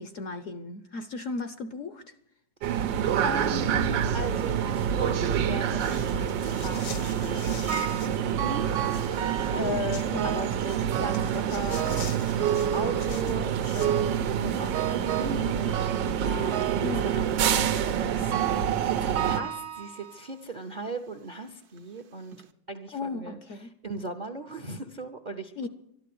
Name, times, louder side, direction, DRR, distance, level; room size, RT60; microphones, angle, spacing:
voice 1, 0.0-2.1 9.5-10.4 16.7-17.0 22.9-23.7 25.6-25.7, left 3 dB, 60° left, 0.9 m, -36 dB
sound 1, 2.6-19.4, right 9 dB, 85° right, 1.5 m, -27 dB
voice 2, 3.2-8.7 9.0-11.9 12.3-23.4 23.8-25.7, right 1 dB, 45° right, 0.6 m, -37 dB
sound 2, 5.8-8.2 8.5-10.1 10.6-14.0, left 6 dB, 80° left, 1.8 m, -45 dB
sound 3, 7.7-8.1 8.4-9.7 10.2-10.6 10.9-11.4 11.7-13.4 13.8-14.3 14.7-15.4 15.7-16.2 16.5-16.9 17.4-17.8 18.3-18.8 19.2-20.2 20.9-21.0 21.8-21.9 22.3-22.4, right 10 dB, 65° right, 1.2 m, -32 dB
12.5 x 11.5 x 8.5 m
omnidirectional pair, 1.9 m